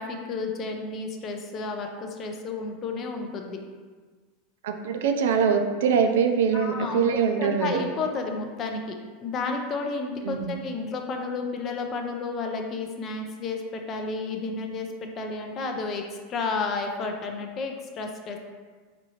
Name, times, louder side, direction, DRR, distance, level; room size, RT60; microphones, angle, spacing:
voice 1, 0.0-3.6 6.5-7.0 7.4-16.0 16.3-18.4, left 4 dB, 30° left, 3 dB, 0.4 m, -32 dB
voice 2, 4.6-7.8 10.2-10.5, right 6 dB, 85° right, 5 dB, 0.4 m, -23 dB
4.2 x 2.7 x 2.8 m, 1.5 s
supercardioid pair, 145°, 0 cm